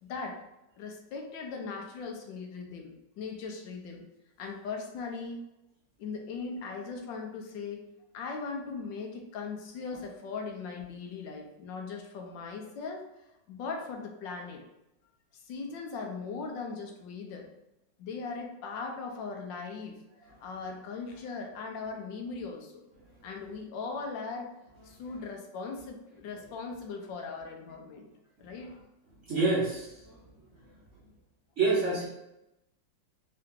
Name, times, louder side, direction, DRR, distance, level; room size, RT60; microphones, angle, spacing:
voice 1, 0.0-0.4 0.8-4.0 4.4-5.4 6.0-7.8 8.1-13.0 13.5-14.6 15.5-17.5 18.0-19.9 20.3-22.8 23.2-24.5 24.8-28.1 28.4-28.7, left 4 dB, 75° left, 2 dB, 1.4 m, -39 dB
voice 2, 29.3-30.2 31.6-32.1, right 3 dB, 55° right, -5 dB, 0.9 m, -27 dB
3.8 x 2.8 x 3.6 m, 0.88 s
omnidirectional pair, 2.0 m